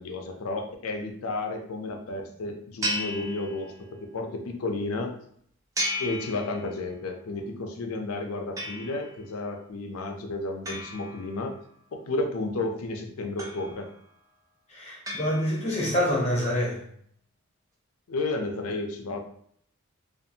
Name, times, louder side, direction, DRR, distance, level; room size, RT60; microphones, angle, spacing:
voice 1, 0.0-5.2 6.0-11.6 11.9-13.9 18.1-19.2, left 2 dB, 85° left, 4 dB, 0.5 m, -32 dB
sound 1, 2.8-4.0 5.8-7.0 8.6-9.3 10.7-11.8 13.4-14.1 15.1-15.9, equal, 15° right, 0.4 m, -35 dB
voice 2, 14.7-16.8, left 1 dB, 30° left, -3 dB, 0.7 m, -26 dB
2.6 x 2.4 x 2.7 m, 0.65 s
head